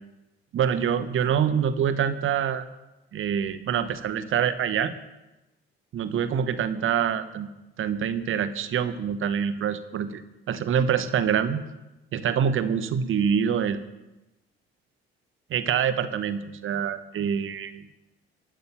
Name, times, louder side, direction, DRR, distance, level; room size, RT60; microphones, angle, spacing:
voice 1, 0.5-2.7 3.1-4.9 5.9-7.5 7.8-10.2 10.5-11.6 12.1-13.8 15.5-17.9, right 8 dB, 40° right, 12 dB, 1.0 m, -25 dB
12.0 x 9.4 x 5.7 m, 1.0 s
figure-of-eight pair, 50°, 30 cm